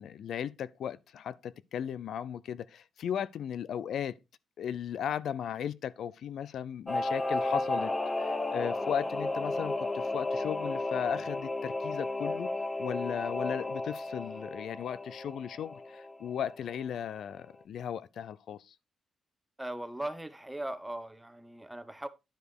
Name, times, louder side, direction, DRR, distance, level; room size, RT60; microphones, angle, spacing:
voice 1, 0.0-4.1 4.6-7.9 8.2-12.5 12.8-18.7, left 9 dB, 75° left, 0.5 m, -36 dB
Singing / Musical instrument, 6.9-16.9 17.2-17.3, left 2 dB, 20° left, 0.9 m, -33 dB
voice 2, 19.6-22.1, right 1 dB, 5° right, 1.0 m, -39 dB
10.5 x 5.1 x 4.7 m
cardioid pair, 115°, 0 cm